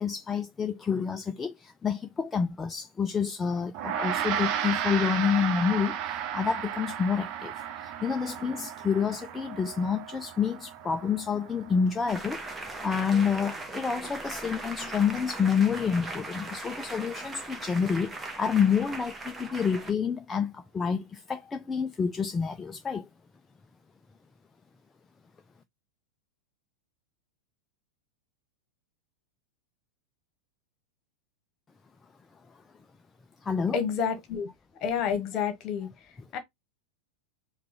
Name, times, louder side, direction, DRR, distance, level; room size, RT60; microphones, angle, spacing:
voice 1, 0.0-23.1 33.4-33.8, left 6 dB, 15° left, 0.3 m, -28 dB
Gong, 3.7-13.3, right 9 dB, 40° right, 0.7 m, -34 dB
sound 1, 12.1-19.9, right 2 dB, 15° right, 0.9 m, -39 dB
voice 2, 33.7-34.5 34.8-35.9 36.3-36.4, left 7 dB, 35° left, 1.2 m, -29 dB
4.6 x 2.3 x 3.6 m
figure-of-eight pair, 90°, 0 cm